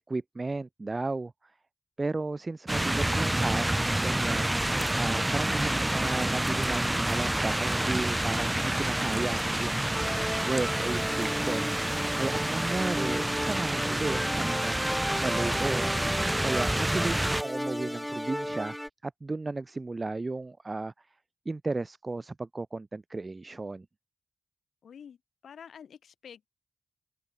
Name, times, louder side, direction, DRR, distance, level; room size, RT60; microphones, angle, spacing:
voice 1, 0.1-1.5 2.0-10.0 10.4-15.9 16.4-18.8 19.0-21.2 21.4-23.9, right 3 dB, 40° right, 2.7 m, -34 dB
voice 2, 2.7-3.4 24.8-25.2 25.4-26.5, left 7 dB, 80° left, 6.5 m, -48 dB
sound 1, 2.7-17.4, right 1 dB, 15° right, 0.4 m, -28 dB
sound 2, 9.9-18.9, equal, 5° left, 3.3 m, -34 dB
open air
supercardioid pair, 40°, 0 cm